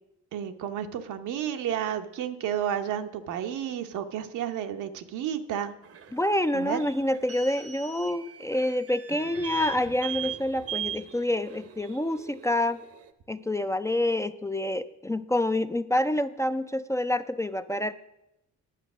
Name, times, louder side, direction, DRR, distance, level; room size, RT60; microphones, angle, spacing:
voice 1, 0.3-5.7 6.5-6.8, right 9 dB, 85° right, 7 dB, 0.9 m, -31 dB
sound 1, 5.8-13.1, right 10 dB, 50° right, 0.8 m, -40 dB
voice 2, 6.1-12.8 13.3-17.9, left 1 dB, 10° left, 11 dB, 0.4 m, -27 dB
10.0 x 7.0 x 6.1 m, 0.88 s
cardioid pair, 90°, 30 cm